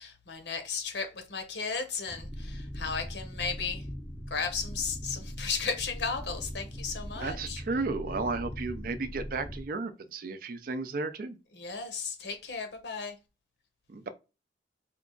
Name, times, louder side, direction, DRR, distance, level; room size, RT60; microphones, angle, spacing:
voice 1, 0.0-3.8 4.3-7.6 11.5-13.2, left 5 dB, 70° left, 0.9 m, -35 dB
sound 1, 2.1-9.6, equal, 10° left, 0.5 m, -40 dB
voice 2, 7.1-11.4 13.9-14.1, right 3 dB, 50° right, 0.4 m, -34 dB
4.4 x 2.4 x 3.7 m
head